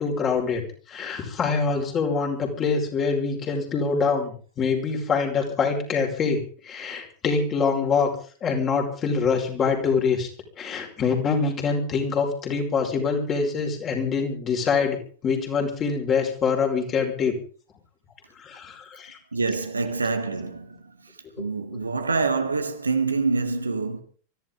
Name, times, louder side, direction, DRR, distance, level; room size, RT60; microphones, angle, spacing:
voice 1, 0.0-8.1 8.4-10.3 10.6-17.3 18.4-19.2, left 5 dB, 30° left, 5.1 m, -25 dB
voice 2, 19.3-21.1 21.4-24.0, right 4 dB, 80° right, 2.1 m, -26 dB
24.5 x 15.0 x 3.9 m
figure-of-eight pair, 90°, 0 cm